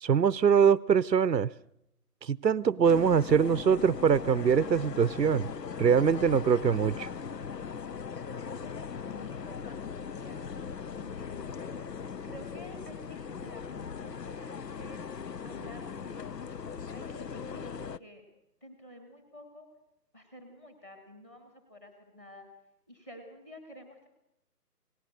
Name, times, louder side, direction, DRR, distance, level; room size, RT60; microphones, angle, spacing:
voice 1, 0.0-1.5 2.2-5.5 5.8-7.1, right 7 dB, 90° right, 19 dB, 0.8 m, -23 dB
sound 1, 2.8-18.0, left 6 dB, 80° left, 0.9 m, -39 dB
voice 2, 8.6-10.4 11.0-11.9 12.2-15.0 15.4-16.5 16.9-18.2 18.6-19.7 20.1-22.5 22.9-24.1, equal, 10° left, 5 dB, 1.7 m, -50 dB
28.5 x 18.5 x 6.5 m, 0.83 s
figure-of-eight pair, 165°, 48 cm